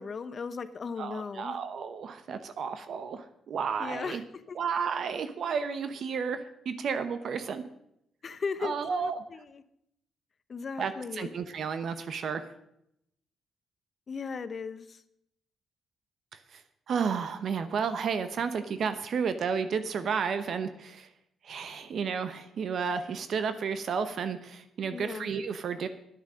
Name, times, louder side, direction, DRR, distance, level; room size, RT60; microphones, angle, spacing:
voice 1, 0.0-1.6 3.8-4.6 8.2-9.6 10.5-11.3 14.1-15.0 24.9-25.3, left 5 dB, 40° left, 14 dB, 0.8 m, -37 dB
voice 2, 1.0-4.2 4.6-7.6 8.6-9.2 10.8-12.4 16.5-16.6 16.9-21.1 21.4-25.9, right 6 dB, 60° right, 10 dB, 0.9 m, -32 dB
10.5 x 8.9 x 6.3 m, 0.79 s
cardioid pair, 90°, 0 cm